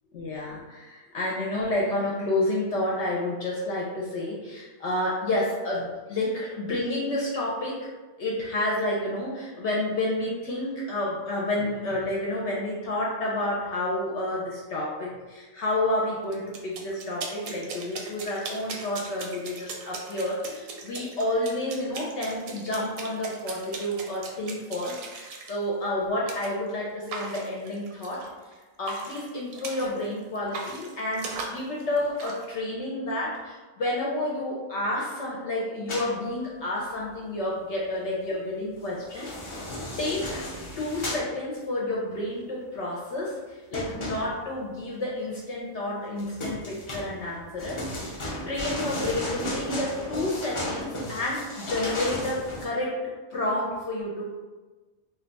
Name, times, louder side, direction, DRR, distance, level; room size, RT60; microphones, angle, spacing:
voice 1, 0.1-7.9 8.2-28.2 28.8-39.7 40.0-40.4 40.8-48.1 48.5-53.0 53.3-54.4, left 1 dB, 65° left, -4 dB, 0.8 m, -30 dB
sound 1, 16.3-25.6 26.3-26.5 27.1-28.5 28.8-30.1 30.3-32.4, right 4 dB, 80° right, 1.0 m, -39 dB
sound 2, 35.9-36.1 38.9-41.3 43.7-44.6 46.2-52.7, left 1 dB, 50° left, 0.3 m, -34 dB
2.7 x 2.2 x 3.8 m, 1.3 s
omnidirectional pair, 1.4 m